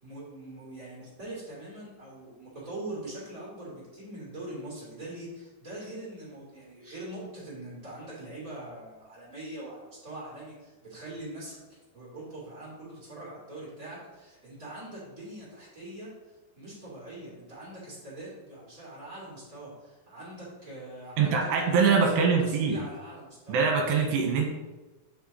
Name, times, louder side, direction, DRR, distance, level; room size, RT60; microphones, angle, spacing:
voice 1, 0.0-16.1 16.5-23.6, right 1 dB, 20° right, -7 dB, 2.7 m, -42 dB
voice 2, 21.2-22.8 23.5-24.5, right 5 dB, 70° right, 1 dB, 3.2 m, -23 dB
8.5 x 5.6 x 4.3 m, 1.1 s
omnidirectional pair, 5.3 m